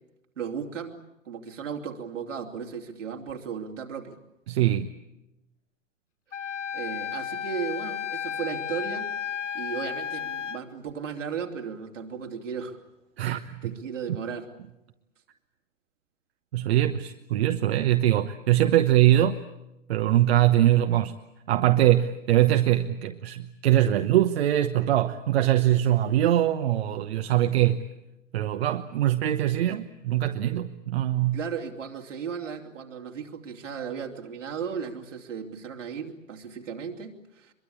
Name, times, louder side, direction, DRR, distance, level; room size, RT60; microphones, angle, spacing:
voice 1, 0.4-1.0 1.2-4.2 6.7-9.1 9.5-12.8 13.2-14.5 31.3-37.5, right 6 dB, 70° right, 2 dB, 3.1 m, -35 dB
voice 2, 4.5-4.9 13.2-13.7 16.5-19.4 19.9-21.1 21.5-27.9 28.3-31.4, right 13 dB, 55° right, 7 dB, 1.1 m, -22 dB
Wind instrument woodwind instrument, 6.3-10.6, left 8 dB, 70° left, 1.0 m, -33 dB
24.0 x 22.5 x 8.6 m, 0.94 s
figure-of-eight pair, 105°, 38 cm